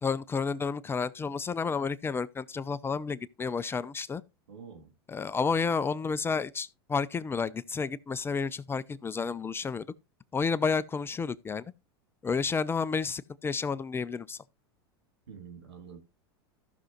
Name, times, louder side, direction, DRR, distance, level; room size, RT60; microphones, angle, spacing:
voice 1, 0.0-4.2 5.1-9.9 10.3-11.6 12.2-14.4, left 5 dB, 15° left, 0.5 m, -31 dB
voice 2, 4.5-4.9 15.3-16.0, right 6 dB, 85° right, 3.0 m, -47 dB
14.5 x 6.2 x 3.0 m
hypercardioid pair, 100°, 13 cm